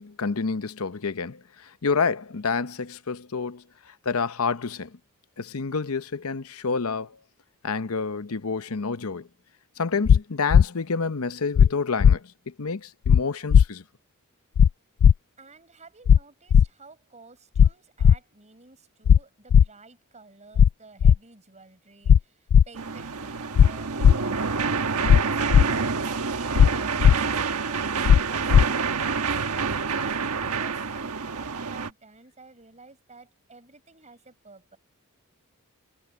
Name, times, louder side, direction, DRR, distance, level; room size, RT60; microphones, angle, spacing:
voice 1, 0.0-1.4 1.8-3.6 4.0-4.9 5.4-7.2 7.6-9.3 9.8-13.8, left 4 dB, 70° left, 0.8 m, -28 dB
sound 1, 10.1-10.2 10.5-10.6 11.6-11.7 12.0-12.1 13.1-13.2 13.5-13.6 14.6-14.7 15.0-15.1 16.1-16.2 16.5-16.7 17.6-17.7 18.0-18.2 19.1-19.2 19.5-19.6 20.6-20.7 21.0-21.2 22.1-22.2 22.5-22.6 23.6-23.7 24.0-24.1 25.1-25.2 25.5-25.6 26.6-26.7 27.0-27.1 28.1-28.2 28.5-28.6, left 8 dB, 85° left, 0.3 m, -14 dB
voice 2, 15.4-24.1 24.5-24.8 25.2-34.8, right 4 dB, 30° right, 7.7 m, -51 dB
sound 2, 22.7-31.9, right 5 dB, 80° right, 1.3 m, -28 dB
head